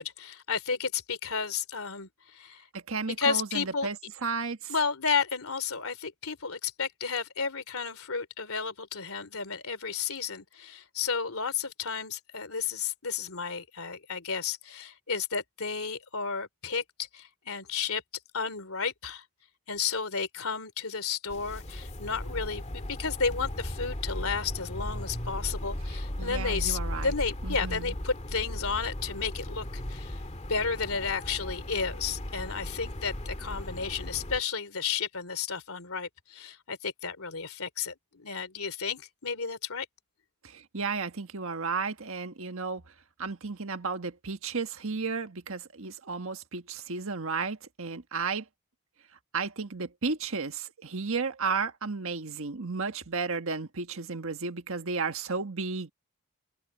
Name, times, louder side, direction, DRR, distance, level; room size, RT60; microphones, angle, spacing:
voice 1, 0.0-2.7 3.2-3.9 4.7-18.0 18.3-19.2 19.7-30.2 30.5-39.9, left 5 dB, 70° left, 3.3 m, -32 dB
voice 2, 2.7-4.0 4.2-4.7 26.2-27.1 27.4-27.9 40.4-42.9 43.2-48.5 49.3-55.9, right 4 dB, 65° right, 1.6 m, -33 dB
sound 1, 21.3-34.4, left 1 dB, 30° left, 2.0 m, -36 dB
head